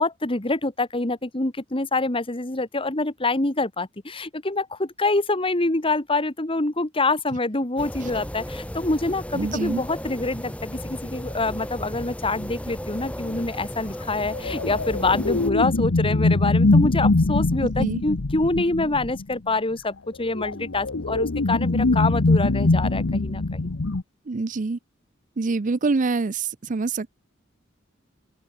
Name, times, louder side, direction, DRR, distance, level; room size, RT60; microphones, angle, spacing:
voice 1, 0.0-23.7, left 2 dB, 25° left, 1.9 m, -26 dB
sound 1, 7.8-15.5, equal, 5° left, 2.9 m, -35 dB
voice 2, 9.3-9.8 17.6-18.0 24.3-24.8 25.4-27.2, right 3 dB, 40° right, 0.5 m, -26 dB
sound 2, 14.2-19.3 20.3-24.0, left 2 dB, 70° left, 1.0 m, -22 dB
open air
head